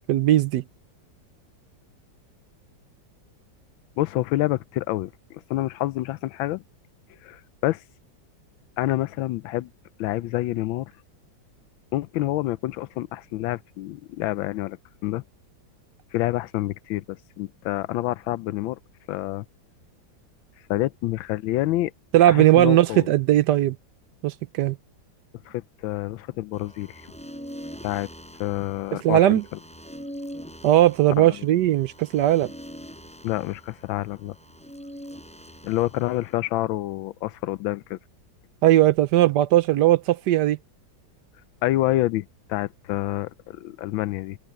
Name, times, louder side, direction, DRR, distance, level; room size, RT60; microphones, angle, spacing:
voice 1, 0.1-0.6 22.1-23.8 24.2-24.8 29.0-29.4 30.6-32.5 38.6-40.6, right 13 dB, 70° right, 1.1 m, -18 dB
voice 2, 4.0-6.6 7.2-7.8 8.8-9.7 10.0-10.9 11.9-14.8 15.0-15.2 16.1-18.8 19.1-19.4 20.7-21.9 22.3-23.1 25.5-27.0 27.8-28.1 28.4-29.4 31.2-31.4 33.2-34.4 35.6-38.0 41.6-44.4, left 16 dB, 85° left, 1.4 m, -27 dB
sound 1, 26.5-36.3, equal, 5° left, 7.6 m, -43 dB
omnidirectional pair, 2.1 m